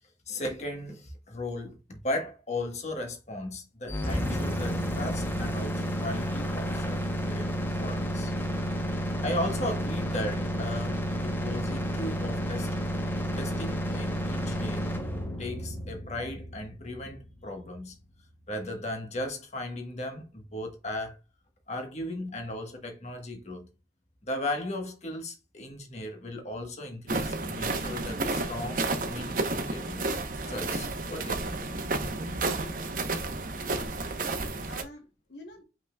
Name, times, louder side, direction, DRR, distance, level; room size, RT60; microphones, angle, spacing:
voice 1, 0.3-7.0 7.3-7.5 7.8-8.3 9.2-12.7 13.4-14.9 15.4-18.0 18.5-21.2 21.7-23.7 24.3-30.1 30.5-31.8, left 1 dB, 40° left, 1.2 m, -36 dB
sound 1, 3.9-17.8, equal, 10° left, 0.7 m, -31 dB
sound 2, 27.1-34.8, right 2 dB, 50° right, 0.8 m, -31 dB
voice 2, 33.7-35.6, left 2 dB, 70° left, 0.9 m, -48 dB
5.5 x 3.8 x 2.2 m
head